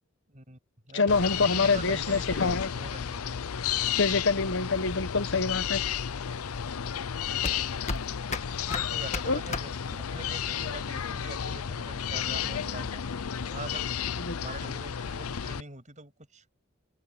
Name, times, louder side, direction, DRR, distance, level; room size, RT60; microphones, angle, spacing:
voice 1, 0.3-0.6 0.9-3.4 8.7-9.7 10.1-13.0 13.4-13.9 14.3-16.4, right 3 dB, 35° right, 7.9 m, -43 dB
voice 2, 0.9-2.7 4.0-5.8 9.2-9.4 14.2-14.4, left 4 dB, 60° left, 1.4 m, -26 dB
sound 1, 1.1-15.6, left 8 dB, 85° left, 0.6 m, -32 dB
sound 2, 4.4-10.3, left 3 dB, 35° left, 1.5 m, -37 dB
open air
head